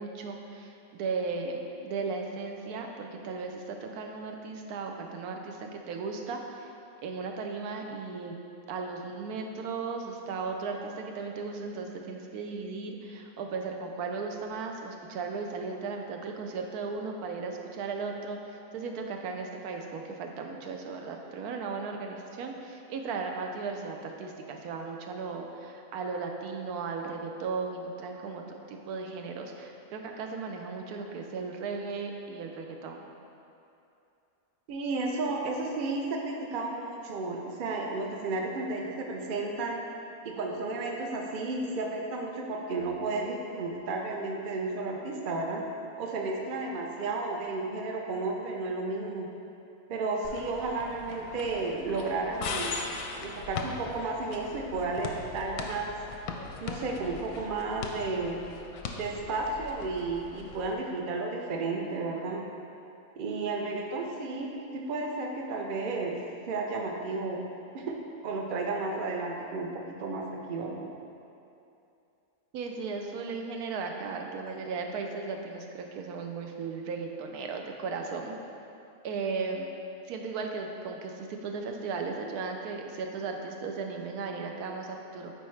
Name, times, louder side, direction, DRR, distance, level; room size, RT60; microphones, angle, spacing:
voice 1, 0.0-6.7 7.0-8.4 8.7-33.1 72.5-78.4 79.0-79.7 80.1-85.3, right 4 dB, 85° right, 3 dB, 1.1 m, -36 dB
voice 2, 34.7-39.8 40.2-45.6 46.0-49.3 49.9-52.7 53.2-56.0 56.6-58.4 59.0-62.4 63.2-66.2 66.5-67.5 67.7-68.0 68.2-70.8, right 3 dB, 55° right, 1 dB, 0.6 m, -33 dB
sound 1, 50.2-60.7, left 4 dB, 85° left, 1.1 m, -40 dB
8.8 x 4.4 x 3.2 m, 2.7 s
omnidirectional pair, 1.6 m